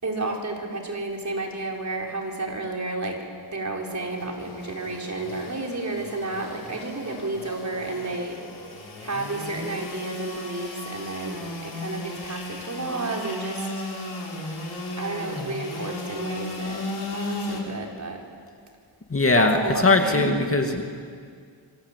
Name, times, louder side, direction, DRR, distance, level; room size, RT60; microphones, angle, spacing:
voice 1, 0.0-3.2 3.5-8.4 9.0-13.7 15.0-16.8 17.1-18.2 19.3-20.3, right 3 dB, 40° right, 0 dB, 4.9 m, -31 dB
Engine / Sawing, 3.8-17.6, left 2 dB, 60° left, 5.4 m, -35 dB
voice 2, 19.1-19.6 19.8-20.8, left 3 dB, 30° left, 3 dB, 2.4 m, -20 dB
27.0 x 25.0 x 8.5 m, 2.2 s
wide cardioid pair, 105°, 44 cm